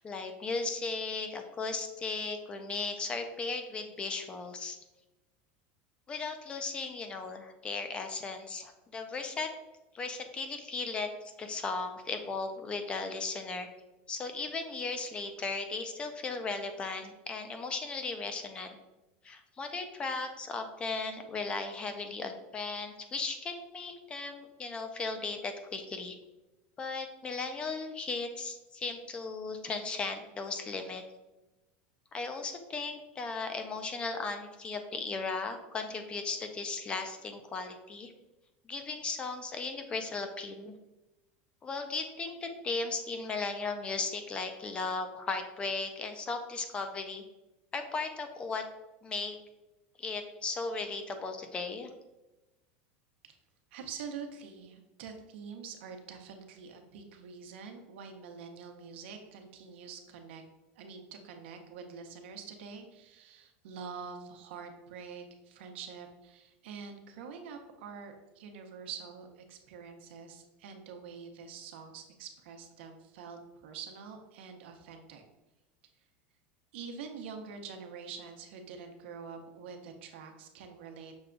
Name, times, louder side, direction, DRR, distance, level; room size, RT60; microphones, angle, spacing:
voice 1, 0.0-4.8 6.1-9.5 9.9-13.7 14.1-18.8 19.2-26.2 26.8-31.0 32.1-38.1 38.7-40.8 41.6-47.2 47.7-48.6 49.0-49.4 50.0-51.9, left 4 dB, 15° left, 7 dB, 0.4 m, -36 dB
voice 2, 53.7-60.4 60.8-75.2 76.7-81.1, right 6 dB, 80° right, 5 dB, 0.7 m, -46 dB
6.1 x 2.3 x 3.7 m, 1.0 s
supercardioid pair, 160°, 6 cm